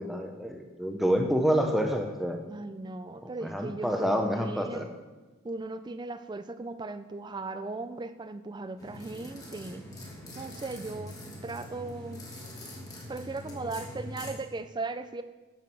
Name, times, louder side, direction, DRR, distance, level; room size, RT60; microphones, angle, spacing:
voice 1, 0.0-2.4 3.2-4.9, equal, ahead, 3 dB, 0.8 m, -28 dB
voice 2, 2.5-4.9 5.4-9.8 10.4-12.2 13.1-15.2, right 3 dB, 20° right, 11 dB, 0.4 m, -37 dB
sound 1, 8.8-14.3, left 1 dB, 15° left, 1.6 m, -43 dB
7.6 x 7.3 x 5.9 m, 1.2 s
head